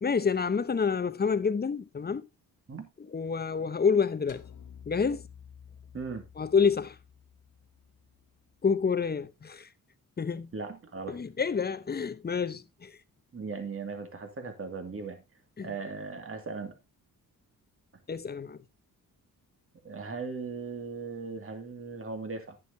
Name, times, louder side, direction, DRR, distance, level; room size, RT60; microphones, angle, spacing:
voice 1, 0.0-2.3 3.0-4.4 4.9-5.2 6.4-7.0 8.6-9.7 10.2-10.5 11.1-13.0 15.6-15.7 18.1-18.6, left 6 dB, 25° left, 0.8 m, -28 dB
sound 1, 4.3-8.7, left 8 dB, 60° left, 1.1 m, -52 dB
voice 2, 5.9-6.3 10.5-11.2 13.3-15.2 15.6-16.8 19.8-22.6, right 4 dB, 40° right, 2.3 m, -38 dB
10.5 x 10.0 x 2.7 m
cardioid pair, 100°, 36 cm